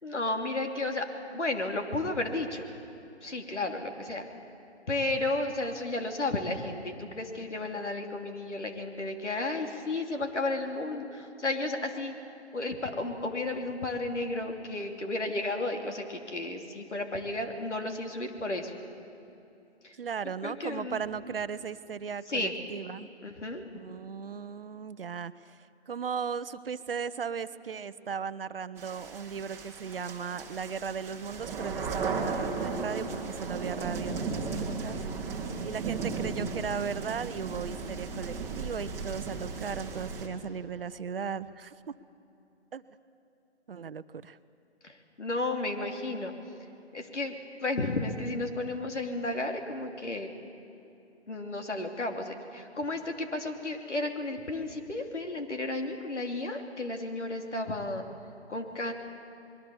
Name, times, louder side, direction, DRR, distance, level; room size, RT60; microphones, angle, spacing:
voice 1, 0.0-2.7 3.2-4.3 4.9-12.1 12.5-18.7 19.8-19.9 20.4-21.0 22.3-22.5 23.2-23.6 44.8-46.3 46.9-50.4 51.3-58.0 58.5-58.9, left 2 dB, 85° left, 4 dB, 3.1 m, -33 dB
voice 2, 19.9-23.1 23.7-25.6 25.9-35.0 35.6-41.7 42.7-42.8 43.7-44.4, right 6 dB, 55° right, 14 dB, 0.8 m, -37 dB
sound 1, 28.8-40.3, right 4 dB, 10° right, 1.5 m, -35 dB
25.5 x 22.0 x 7.1 m, 2.8 s
figure-of-eight pair, 150°, 35 cm